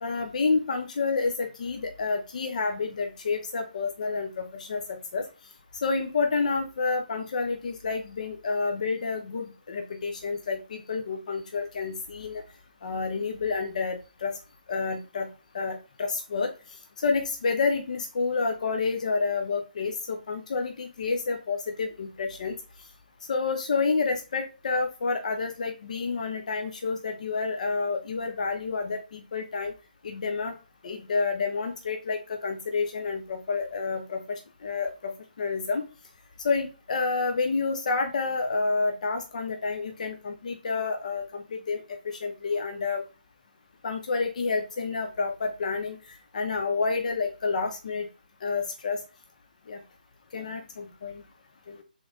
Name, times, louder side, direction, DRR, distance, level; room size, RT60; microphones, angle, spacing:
voice 1, 0.0-5.2 5.8-12.4 12.8-14.4 14.7-15.3 15.5-16.5 17.0-22.6 23.3-29.7 30.0-30.5 30.8-35.8 36.4-43.0 43.8-46.0 46.3-48.1 48.4-49.0 49.7-49.8 50.3-51.2 51.7-51.8, left 4 dB, 55° left, 4 dB, 0.7 m, -29 dB
3.7 x 3.2 x 3.8 m, 0.31 s
figure-of-eight pair, 140°, 5 cm